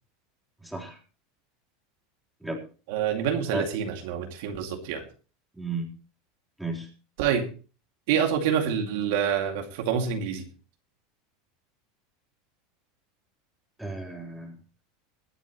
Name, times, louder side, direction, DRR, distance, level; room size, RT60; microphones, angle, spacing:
voice 1, 0.6-1.0 2.4-2.6 3.5-3.7 5.6-5.9 6.6-6.9 13.8-14.6, right 2 dB, ahead, -1 dB, 3.7 m, -33 dB
voice 2, 2.9-5.0 7.2-7.5 8.1-10.5, right 8 dB, 70° right, 4 dB, 2.3 m, -27 dB
21.5 x 9.1 x 3.0 m, 0.36 s
supercardioid pair, 140°, 0 cm